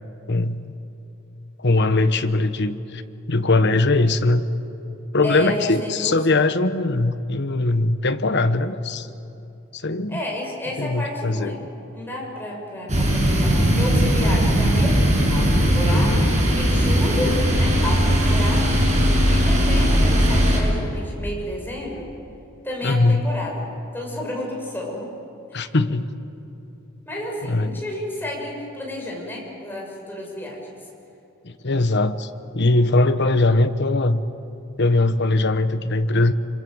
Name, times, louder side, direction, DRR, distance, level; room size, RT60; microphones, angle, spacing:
voice 1, 0.3-0.7 1.6-3.0 3.3-4.4 5.1-9.1 9.7-10.2 10.8-11.5 15.8-16.3 19.2-19.4 22.8-23.3 25.5-26.1 27.4-27.8 31.4-34.2 34.8-36.3, left 2 dB, 55° left, 11 dB, 1.2 m, -21 dB
voice 2, 5.2-6.2 10.1-11.6 11.9-14.9 15.3-16.2 16.5-18.7 19.3-22.1 22.6-23.5 23.9-25.1 25.5-25.7 27.1-30.7, left 1 dB, 10° left, -2 dB, 6.2 m, -31 dB
sound 1, 12.9-20.6, equal, 35° right, 7.2 m, -18 dB
27.0 x 26.0 x 7.9 m, 2.8 s
head